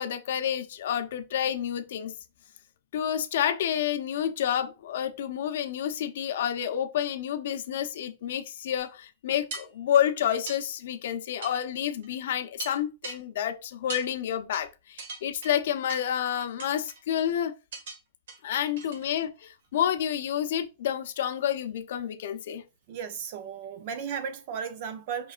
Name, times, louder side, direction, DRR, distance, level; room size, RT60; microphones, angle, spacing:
voice 1, 0.0-2.1 2.9-17.5 18.4-22.6, left 10 dB, 70° left, 0.7 m, -29 dB
sound 1, 8.8-8.9 9.5-10.0 10.5-10.6 11.4-11.6 12.0-12.1 12.6-13.2 13.9-14.1 14.5-14.7 15.0-15.5 15.9-16.2 16.6-17.0 17.7-18.0 18.3-18.4 18.8-19.1 19.4-19.5, right 3 dB, 70° right, 1.5 m, -40 dB
voice 2, 22.9-25.3, right 7 dB, 50° right, 0.6 m, -35 dB
5.2 x 3.8 x 2.4 m
hypercardioid pair, 150°, 0 cm